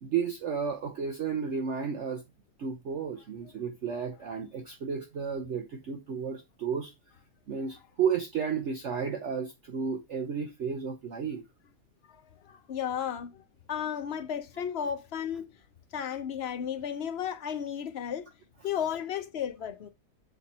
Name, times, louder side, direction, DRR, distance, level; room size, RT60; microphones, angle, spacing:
voice 1, 0.0-2.2 2.6-6.9 7.5-11.4, right 6 dB, 55° right, 0.9 m, -32 dB
voice 2, 12.1-13.4 13.7-15.6 15.9-18.3 18.6-19.9, left 8 dB, 50° left, 0.9 m, -34 dB
6.7 x 4.2 x 4.2 m
omnidirectional pair, 1.7 m